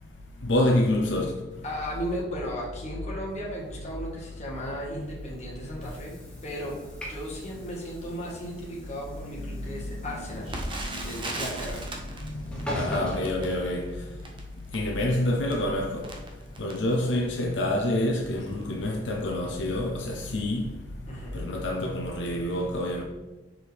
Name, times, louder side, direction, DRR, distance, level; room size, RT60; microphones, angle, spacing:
voice 1, 0.4-1.3 9.2-9.9 10.7-11.2 12.2-14.3 14.7-16.1 16.6-20.8 21.3-23.0, left 1 dB, 85° left, 0.7 m, -28 dB
voice 2, 1.6-6.1 6.4-11.9 21.1-21.4, equal, 40° left, 1.7 m, -36 dB
Train / Sliding door, 4.9-14.2, equal, 5° left, 1.3 m, -41 dB
Crackle, 10.5-17.4 18.0-18.1 18.4-18.7 19.3-19.5 19.8-19.9, right 2 dB, 30° right, 0.9 m, -39 dB
6.2 x 4.7 x 3.5 m
head